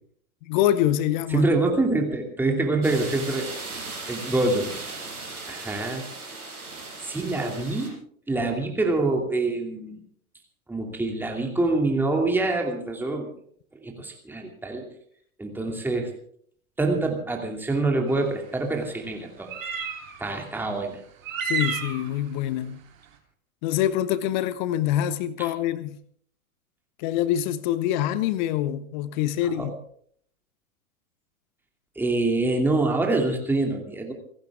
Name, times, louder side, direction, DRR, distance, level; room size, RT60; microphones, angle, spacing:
voice 1, 0.5-1.5 21.4-22.8 23.6-26.0 27.0-29.7, left 12 dB, 35° left, 0.9 m, -25 dB
voice 2, 1.3-3.5 4.1-4.7 5.5-6.0 7.0-8.0 8.3-10.0 10.7-13.3 13.8-14.9 15.4-16.1 16.8-19.5 20.2-21.0 25.4-25.5 29.4-29.7 32.0-34.1, right 2 dB, 5° right, 2.7 m, -25 dB
sound 1, 2.8-7.9, right 3 dB, 80° right, 7.5 m, -37 dB
sound 2, 18.1-18.2 19.4-20.2 21.2-22.1, right 5 dB, 60° right, 3.4 m, -30 dB
29.0 x 12.0 x 3.6 m
figure-of-eight pair, 105°, 44 cm